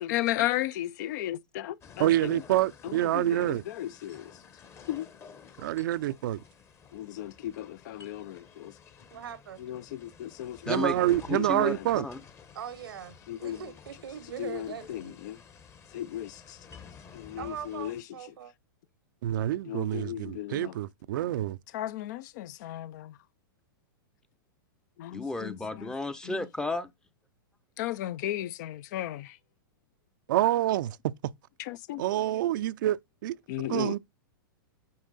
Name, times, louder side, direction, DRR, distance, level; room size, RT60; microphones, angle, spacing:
voice 1, 0.0-2.4 2.8-4.4 4.9-5.1 6.9-8.8 9.6-11.9 13.3-13.6 14.4-15.4 15.9-16.6 17.1-18.0 19.7-20.8 21.7-23.2 25.0-25.9 26.2-26.5 27.8-29.4 31.6-32.0 33.5-34.0, left 13 dB, 50° left, 0.5 m, -35 dB
sound 1, 1.8-18.0, left 6 dB, 20° left, 0.9 m, -52 dB
voice 2, 2.0-3.6 5.6-6.4 10.7-12.1 19.2-21.6 30.3-31.3 32.0-33.4 33.7-34.0, right 14 dB, 60° right, 0.5 m, -27 dB
voice 3, 3.3-3.6 9.1-9.7 10.7-11.4 12.5-15.2 17.4-18.5, right 9 dB, 85° right, 1.1 m, -42 dB
voice 4, 10.6-11.0 11.3-12.2 25.1-26.9, left 3 dB, 5° left, 0.6 m, -33 dB
9.4 x 4.4 x 4.0 m
hypercardioid pair, 135°, 12 cm